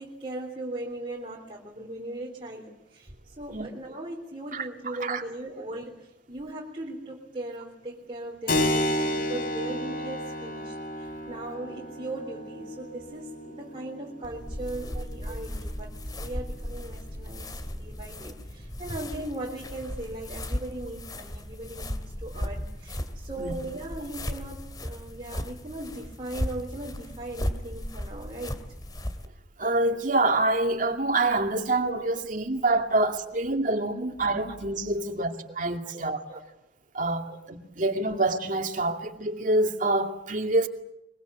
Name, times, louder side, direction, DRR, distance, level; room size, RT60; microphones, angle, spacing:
voice 1, 0.0-17.5 17.8-28.6 34.5-34.6 35.5-35.6 35.8-36.0 36.3-36.4 37.2-37.4, right 1 dB, 30° right, 3.5 m, -39 dB
Keyboard (musical), 8.5-16.7, left 1 dB, 50° left, 4.9 m, -32 dB
sound 1, 14.2-29.3, left 1 dB, 20° left, 2.3 m, -36 dB
voice 2, 29.6-35.3 35.6-36.2 36.9-40.7, right 2 dB, 45° right, 2.5 m, -26 dB
24.0 x 23.0 x 8.3 m
head